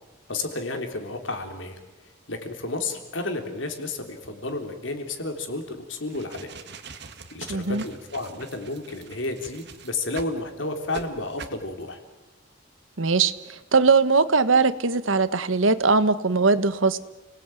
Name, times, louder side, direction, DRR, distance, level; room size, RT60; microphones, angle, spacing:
voice 1, 0.3-1.8 2.3-6.5 7.3-12.0, left 2 dB, 70° left, 5 dB, 3.7 m, -31 dB
sound 1, 6.0-10.4 10.9-11.0 11.4-11.6, right 5 dB, 60° right, 1.9 m, -42 dB
voice 2, 7.5-7.8 13.0-17.0, right 4 dB, 80° right, 13 dB, 1.3 m, -20 dB
30.0 x 19.0 x 9.2 m, 1.1 s
head